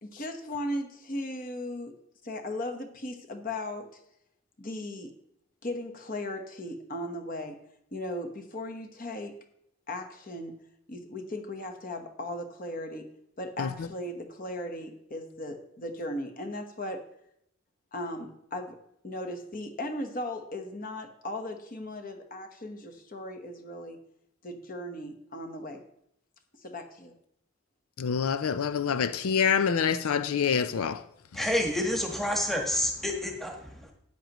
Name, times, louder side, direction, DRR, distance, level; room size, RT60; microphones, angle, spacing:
voice 1, 0.0-1.9 2.2-4.0 4.6-5.1 5.6-7.6 7.9-9.3 9.9-10.6 10.9-13.1 13.4-17.0 17.9-18.8 19.0-24.0 24.4-25.8 26.6-27.1, left 1 dB, 40° left, 1.2 m, -37 dB
voice 2, 28.0-31.0, left 7 dB, 80° left, 0.5 m, -26 dB
voice 3, 31.3-33.9, left 1 dB, ahead, 1.3 m, -29 dB
13.0 x 9.1 x 3.0 m
head